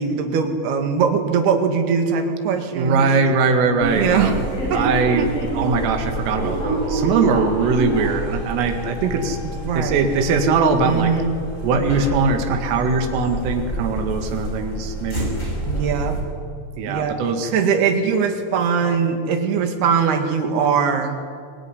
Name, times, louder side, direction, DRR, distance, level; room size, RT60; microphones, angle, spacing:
voice 1, 0.0-3.1 3.9-4.3 4.7-4.8 5.2-5.3 6.4-6.6 9.4-10.0 10.8-11.4 15.7-16.2 16.9-21.2, right 6 dB, 60° right, 5 dB, 3.8 m, -21 dB
voice 2, 2.8-5.2 5.5-9.4 9.8-11.1 11.6-15.4 16.8-17.5, right 4 dB, 90° right, 5 dB, 4.7 m, -21 dB
sound 1, 3.8-16.2, right 1 dB, 15° left, 5.0 m, -27 dB
24.5 x 20.0 x 9.9 m, 2.3 s
omnidirectional pair, 5.7 m